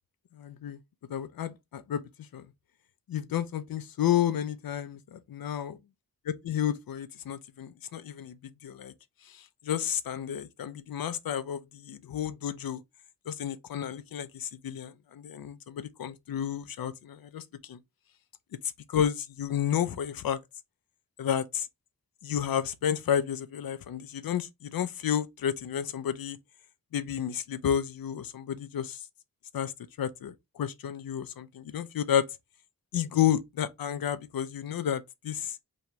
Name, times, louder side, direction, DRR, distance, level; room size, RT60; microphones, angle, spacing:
voice 1, 0.3-0.8 1.1-2.0 2.3-2.5 3.1-5.8 6.3-8.4 8.6-8.9 9.3-12.8 13.3-17.8 18.9-20.4 21.2-21.7 22.2-26.4 26.9-29.0 29.5-29.7 30.0-32.3 32.9-35.6, left 9 dB, 85° left, 0.5 m, -31 dB
3.0 x 2.8 x 4.5 m
wide cardioid pair, 85°, 34 cm